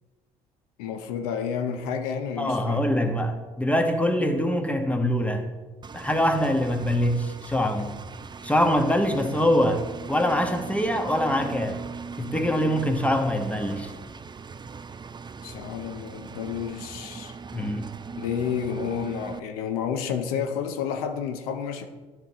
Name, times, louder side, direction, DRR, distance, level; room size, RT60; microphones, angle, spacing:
voice 1, 0.8-2.9 15.4-17.3 18.2-21.9, left 7 dB, 80° left, 7 dB, 0.6 m, -30 dB
voice 2, 2.4-5.4 5.9-7.9 8.4-11.8 12.2-13.9 17.5-17.9, equal, 5° left, 5 dB, 1.2 m, -24 dB
Engine, 5.8-19.4, right 5 dB, 25° right, 0.5 m, -40 dB
11.0 x 4.5 x 4.2 m, 1.2 s
hypercardioid pair, 50°, 19 cm